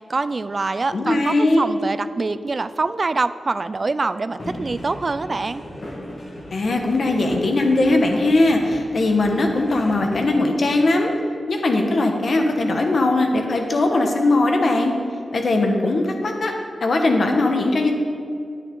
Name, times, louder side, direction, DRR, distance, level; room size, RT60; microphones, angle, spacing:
voice 1, 0.1-5.6, right 3 dB, 35° right, 13 dB, 0.3 m, -25 dB
voice 2, 0.9-1.7 6.5-11.1 11.5-14.9 15.3-16.5 16.8-17.9, left 2 dB, 55° left, 3 dB, 1.2 m, -19 dB
sound 1, 4.4-10.0, equal, 40° left, 1.7 m, -37 dB
9.9 x 9.0 x 3.9 m, 2.3 s
wide cardioid pair, 120°, 0 cm